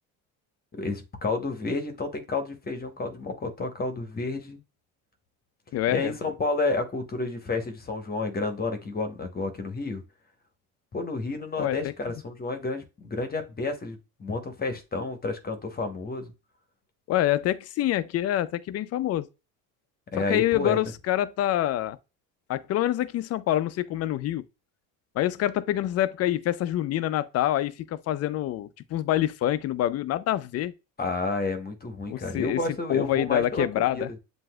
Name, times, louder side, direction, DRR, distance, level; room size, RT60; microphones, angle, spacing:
voice 1, 0.7-4.6 5.9-10.0 10.9-16.3 20.1-20.8 31.0-34.2, left 3 dB, 25° left, 0.9 m, -30 dB
voice 2, 5.7-6.1 11.6-11.8 17.1-19.3 20.2-22.0 22.5-24.4 25.2-30.7 32.1-32.6 32.9-34.1, left 13 dB, 40° left, 0.4 m, -26 dB
7.5 x 2.7 x 2.2 m
supercardioid pair, 100°, 39 cm